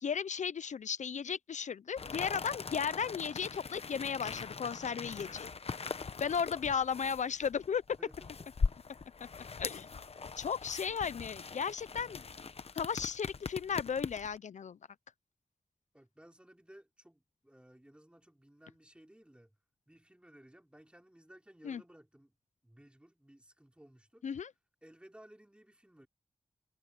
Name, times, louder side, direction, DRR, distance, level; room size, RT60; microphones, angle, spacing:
voice 1, 0.0-5.5 6.2-7.8 9.6-9.9 10.4-12.2 12.7-14.8 21.6-21.8 24.2-24.5, left 7 dB, 75° left, 0.5 m, -35 dB
sound 1, 2.0-14.4, left 5 dB, 55° left, 0.8 m, -41 dB
voice 2, 8.0-8.5 10.9-11.0 15.9-19.6 19.9-22.4 22.6-24.2 24.8-26.1, right 1 dB, 10° right, 3.8 m, -58 dB
wide cardioid pair, 110°, 13 cm